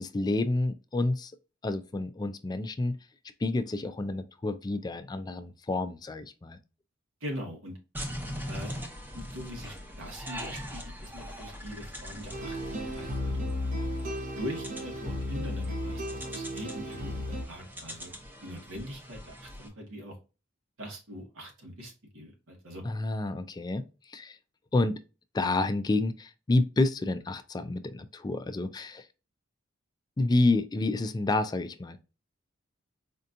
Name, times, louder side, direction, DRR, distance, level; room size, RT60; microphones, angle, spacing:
voice 1, 0.0-1.3 1.6-3.0 3.4-6.6 22.8-24.4 24.7-25.0 25.3-29.1 30.2-32.0, left 2 dB, 20° left, 0.3 m, -29 dB
voice 2, 7.2-7.8 8.5-8.7 9.1-13.5 14.4-18.1 18.4-20.1 20.8-22.8, equal, 90° right, 1.5 m, -42 dB
sound 1, 7.9-19.7, equal, 10° right, 0.7 m, -42 dB
sound 2, 12.3-17.4, left 1 dB, 40° right, 0.8 m, -34 dB
4.3 x 2.7 x 2.4 m
head